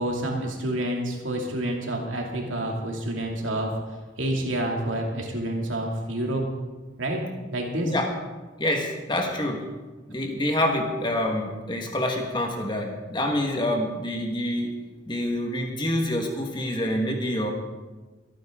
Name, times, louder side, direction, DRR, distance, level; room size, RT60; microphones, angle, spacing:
voice 1, 0.0-3.7 4.2-6.5 7.0-7.2 7.5-7.9, right 1 dB, 90° right, 0 dB, 2.6 m, -28 dB
voice 2, 8.6-9.6 10.1-14.7 15.1-17.5, left 1 dB, 25° left, 2 dB, 1.7 m, -27 dB
24.0 x 9.3 x 3.8 m, 1.3 s
head